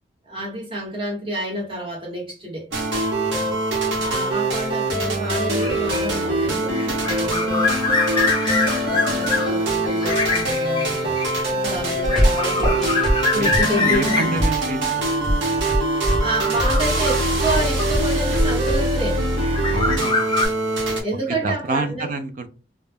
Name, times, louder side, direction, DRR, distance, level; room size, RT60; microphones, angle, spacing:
voice 1, 0.2-2.7 4.0-7.8 8.7-11.2 11.5-14.4 16.2-19.2 21.0-22.1, right 1 dB, 30° right, 1.1 m, -29 dB
sound 1, 2.7-21.0, right 1 dB, 85° right, 0.9 m, -23 dB
voice 2, 3.0-3.6 8.2-8.6 13.3-15.6 19.7-20.4 21.4-22.5, right 3 dB, 45° right, 0.4 m, -29 dB
sound 2, 5.6-18.5 19.2-20.5, left 3 dB, 25° left, 0.5 m, -26 dB
sound 3, 11.7-18.8, equal, ahead, 0.8 m, -23 dB
2.3 x 2.1 x 3.3 m
head